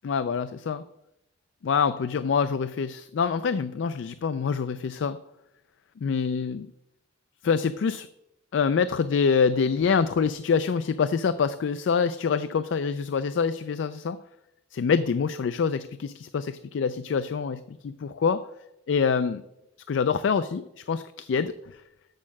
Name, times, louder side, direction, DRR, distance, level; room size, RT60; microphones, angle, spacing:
voice 1, 0.0-0.8 1.6-5.2 6.0-6.7 7.4-8.1 8.5-14.2 14.7-18.4 18.9-19.4 19.9-21.8, left 6 dB, 80° left, 13 dB, 0.4 m, -26 dB
6.6 x 6.3 x 7.2 m, 0.87 s
head